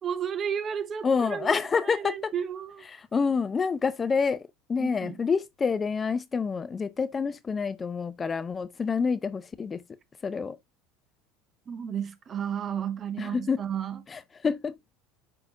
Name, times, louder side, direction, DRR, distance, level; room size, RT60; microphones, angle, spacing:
voice 1, 0.0-2.8 4.8-5.2 11.7-14.0, right 8 dB, 35° right, 1.0 m, -33 dB
voice 2, 1.0-2.3 2.9-4.4 4.7-9.8 10.2-10.6 13.2-13.6 14.1-14.7, left 5 dB, 25° left, 0.6 m, -27 dB
11.0 x 3.9 x 2.5 m
hypercardioid pair, 85°, 0 cm